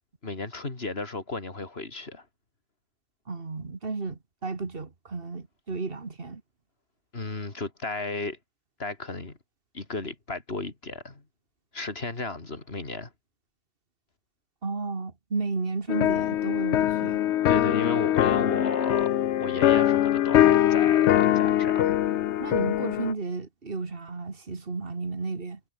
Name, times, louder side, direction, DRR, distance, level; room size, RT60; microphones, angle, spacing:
voice 1, 0.2-2.2 7.1-8.4 8.8-9.4 9.7-11.2 11.7-13.1 17.5-19.1 19.4-22.0, left 3 dB, 60° left, 3.2 m, -34 dB
voice 2, 3.3-6.4 14.6-17.2 22.4-25.6, right 4 dB, 55° right, 2.3 m, -33 dB
sound 1, 15.9-23.1, left 12 dB, 80° left, 0.9 m, -22 dB
omnidirectional pair, 1.2 m